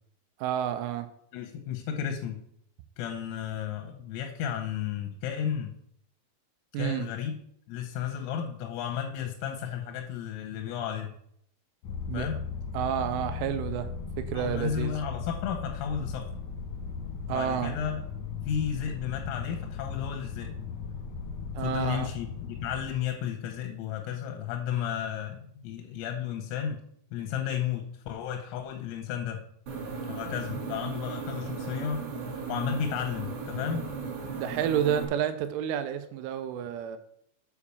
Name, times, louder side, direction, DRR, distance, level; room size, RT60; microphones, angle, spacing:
voice 1, 0.4-1.1 6.7-7.1 12.1-12.3 12.7-13.9 14.2-14.9 17.3-17.7 21.6-22.1 34.4-37.0, right 9 dB, 85° right, 9 dB, 3.1 m, -30 dB
voice 2, 1.3-2.4 3.0-5.7 6.8-7.4 7.7-11.1 12.1-12.4 14.3-16.3 17.3-18.0 18.4-20.6 21.6-26.8 27.1-29.4 30.1-32.0 32.5-33.8, left 8 dB, 85° left, 4 dB, 3.6 m, -33 dB
sound 1, 11.8-22.9, left 5 dB, 65° left, 1.9 m, -37 dB
sound 2, 29.7-35.0, right 5 dB, 60° right, 2.8 m, -36 dB
8.3 x 4.9 x 7.0 m, 0.70 s
omnidirectional pair, 5.8 m